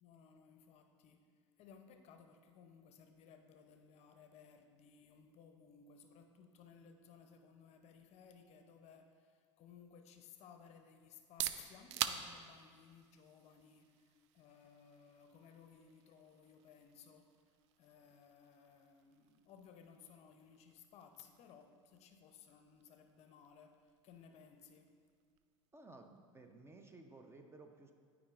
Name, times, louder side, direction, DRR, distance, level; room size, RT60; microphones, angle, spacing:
voice 1, 0.0-24.9, left 6 dB, 40° left, 6 dB, 0.6 m, -61 dB
sound 1, 11.1-26.7, right 11 dB, 60° right, 0.4 m, -49 dB
voice 2, 25.7-27.9, right 2 dB, 15° right, 5 dB, 0.7 m, -57 dB
12.5 x 4.9 x 2.5 m, 2.1 s
hypercardioid pair, 80°, 16 cm